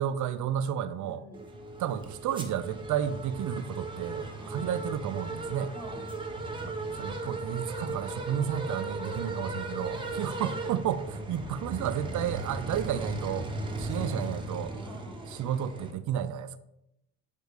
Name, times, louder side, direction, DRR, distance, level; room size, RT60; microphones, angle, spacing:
voice 1, 0.0-1.2 1.8-5.7 6.6-13.5 13.8-14.7 15.3-16.6, right 9 dB, 50° right, 0.6 m, -32 dB
voice 2, 1.0-1.4 4.4-4.7 5.7-6.0 9.8-10.5 13.9-15.4, equal, 5° left, 1.3 m, -48 dB
sound 1, 1.3-15.9, right 2 dB, 15° right, 1.1 m, -37 dB
8.2 x 3.3 x 4.9 m
cardioid pair, 100°, 37 cm